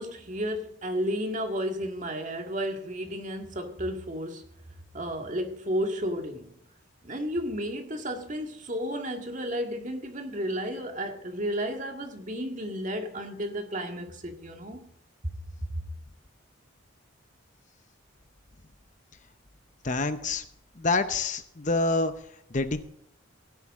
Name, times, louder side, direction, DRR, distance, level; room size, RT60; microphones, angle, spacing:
voice 1, 0.0-4.5 4.9-6.5 7.0-14.9, equal, 35° right, 1.9 m, -32 dB
voice 2, 19.8-20.4 20.8-22.1 22.5-22.8, left 3 dB, 35° left, 0.7 m, -26 dB
17.0 x 10.5 x 3.7 m
head